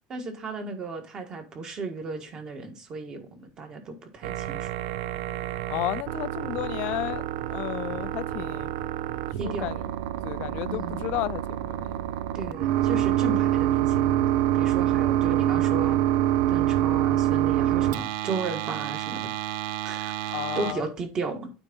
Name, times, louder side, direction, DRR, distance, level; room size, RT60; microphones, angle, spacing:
voice 1, 0.1-4.7 9.4-9.7 10.7-11.1 12.3-14.2 14.5-16.0 16.5-19.3 19.8-21.5, right 3 dB, 30° right, 1.5 m, -35 dB
sound 1, 4.2-20.7, right 12 dB, 75° right, 0.5 m, -26 dB
voice 2, 5.7-8.7 9.3-9.9 10.2-12.0 20.3-20.9, left 19 dB, 55° left, 0.3 m, -33 dB
8.9 x 3.5 x 5.3 m
cardioid pair, 150°, 3 cm